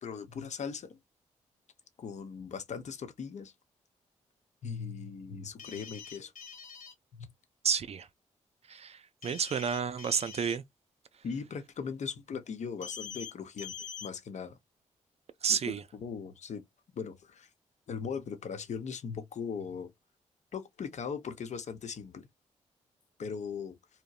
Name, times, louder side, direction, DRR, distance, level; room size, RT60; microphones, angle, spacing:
voice 1, 0.0-1.0 2.0-3.5 4.6-6.3 7.1-7.3 11.2-13.8 14.0-14.6 15.5-16.6 16.9-17.5 17.9-19.9 20.5-22.3 23.2-23.8, left 6 dB, 65° left, 0.7 m, -39 dB
sound 1, 5.6-6.9 9.2-10.6 12.8-13.3 13.6-14.1, left 7 dB, 85° left, 1.0 m, -44 dB
voice 2, 7.6-8.1 8.7-10.6 15.4-15.8, right 7 dB, 55° right, 0.4 m, -31 dB
2.8 x 2.1 x 2.3 m
cardioid pair, 55°, 13 cm